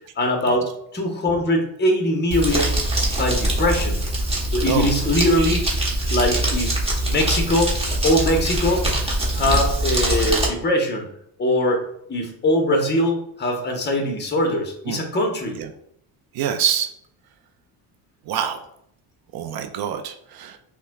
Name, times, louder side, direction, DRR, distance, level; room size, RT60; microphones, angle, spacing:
voice 1, 0.2-2.8 3.1-4.0 4.5-5.6 6.1-6.7 7.1-7.7 8.0-8.8 9.3-11.1 11.4-11.8 12.1-15.6, left 1 dB, 20° left, 2 dB, 1.0 m, -21 dB
Crumpling crinkling, 2.3-10.5, right 1 dB, 10° right, 1.1 m, -23 dB
voice 2, 5.2-5.5 9.5-9.6 14.9-15.0 15.6-15.7 16.3-16.9 18.3-18.6 19.3-20.6, right 9 dB, 50° right, 7 dB, 0.5 m, -26 dB
5.5 x 2.3 x 2.3 m, 0.71 s
supercardioid pair, 85°, 49 cm